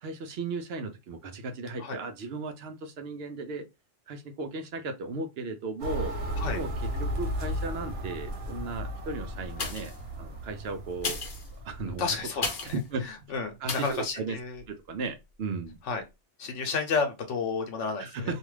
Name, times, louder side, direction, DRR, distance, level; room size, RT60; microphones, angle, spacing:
voice 1, 0.0-3.7 4.1-6.1 6.5-9.9 10.2-11.2 11.6-12.2 12.6-13.3 13.6-14.4 14.7-15.8 18.0-18.4, right 3 dB, 65° right, 0.8 m, -36 dB
sound 1, 5.8-12.3, equal, 85° right, 1.1 m, -35 dB
sound 2, 9.6-10.1 10.9-12.9 13.7-14.0 14.6-14.7, left 4 dB, 55° left, 0.9 m, -35 dB
voice 2, 11.8-12.6 13.3-14.6 15.9-16.0 16.4-18.3, left 4 dB, 90° left, 1.1 m, -31 dB
2.5 x 2.3 x 3.1 m
omnidirectional pair, 1.2 m